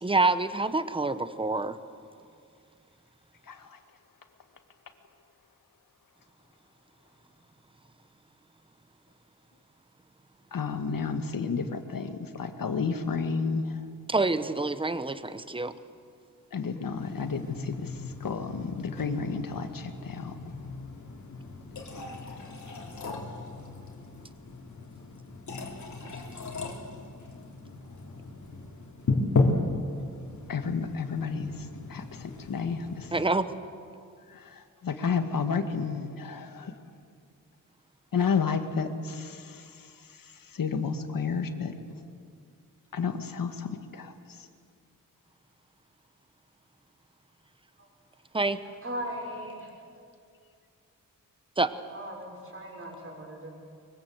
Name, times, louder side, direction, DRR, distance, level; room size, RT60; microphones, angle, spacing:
voice 1, 0.0-1.8 14.1-15.7 33.1-33.5 48.3-48.6 51.6-51.7, right 3 dB, 15° right, 12 dB, 1.0 m, -27 dB
voice 2, 3.5-3.8 10.5-13.8 16.5-20.3 30.5-33.1 34.3-36.8 38.1-41.7 42.9-44.5, left 5 dB, 85° left, 7 dB, 1.9 m, -32 dB
sound 1, 17.0-33.3, left 3 dB, 60° left, 3.3 m, -35 dB
voice 3, 48.8-49.7 51.9-53.5, equal, 40° right, 0 dB, 6.3 m, -38 dB
24.0 x 23.5 x 8.0 m, 2.3 s
wide cardioid pair, 145°, 33 cm